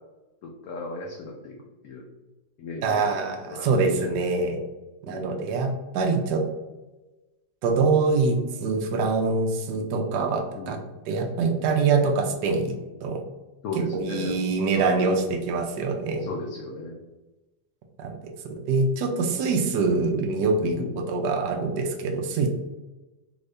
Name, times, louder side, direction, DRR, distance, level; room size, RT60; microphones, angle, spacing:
voice 1, 0.4-1.6 1.8-2.0 2.6-3.0 3.5-3.8 4.1-4.3 5.1-5.3 9.7-9.9 10.5-10.8 12.5-12.6 13.6-15.1 16.2-17.0 20.7-21.0, left 2 dB, 70° left, -1 dB, 0.9 m, -35 dB
voice 2, 2.8-4.6 5.0-6.4 7.6-10.8 11.1-12.7 13.0-13.2 13.8-16.3 18.0-18.2 18.5-22.5, right 4 dB, 75° right, 3 dB, 1.1 m, -24 dB
3.5 x 2.6 x 3.2 m, 1.1 s
omnidirectional pair, 2.0 m